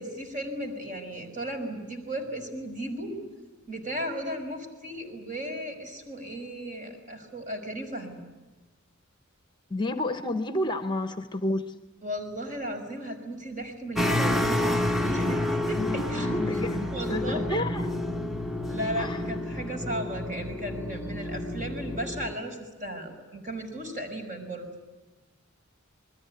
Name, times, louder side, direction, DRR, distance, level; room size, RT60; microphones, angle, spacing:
voice 1, 0.0-3.1 3.7-8.2 12.0-16.6 16.9-17.4 18.7-24.7, right 1 dB, 40° right, 5.4 m, -35 dB
voice 2, 9.7-11.7 15.8-17.9 19.0-19.2, left 1 dB, 20° left, 1.0 m, -30 dB
sound 1, 14.0-22.3, left 1 dB, ahead, 1.1 m, -29 dB
28.0 x 21.0 x 9.5 m
head